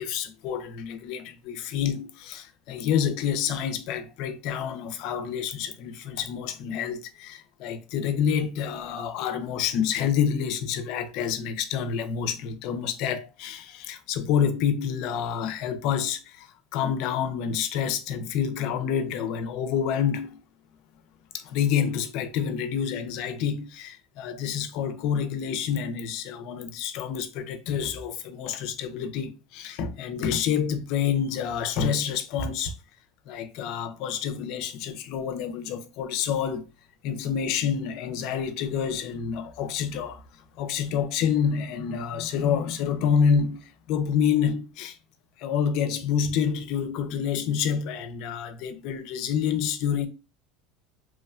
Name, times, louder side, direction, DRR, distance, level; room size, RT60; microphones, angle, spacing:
voice 1, 0.0-16.5 16.7-20.4 21.3-32.7 33.3-36.6 37.0-40.2 40.6-45.0 45.4-50.1, left 7 dB, 60° left, 0.4 m, -28 dB
3.0 x 2.2 x 2.3 m
supercardioid pair, 145°, 0 cm